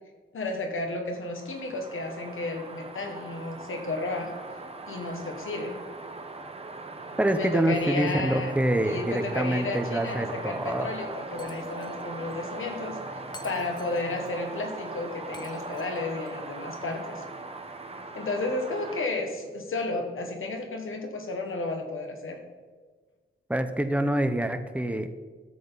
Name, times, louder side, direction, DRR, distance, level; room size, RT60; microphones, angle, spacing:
voice 1, 0.3-4.3 4.9-5.8 7.3-8.6 8.8-17.2 17.9-22.4, left 2 dB, 75° left, 4 dB, 1.6 m, -33 dB
sound 1, 1.2-19.1, right 3 dB, 30° right, 1.1 m, -40 dB
voice 2, 7.2-10.9 23.5-25.1, right 1 dB, 5° right, 8 dB, 0.8 m, -26 dB
Shatter, 11.4-12.0 12.3-12.4 13.3-14.3 15.3-16.3, left 2 dB, 20° left, 0.9 m, -50 dB
12.5 x 7.8 x 4.1 m, 1.4 s
wide cardioid pair, 95°, 21 cm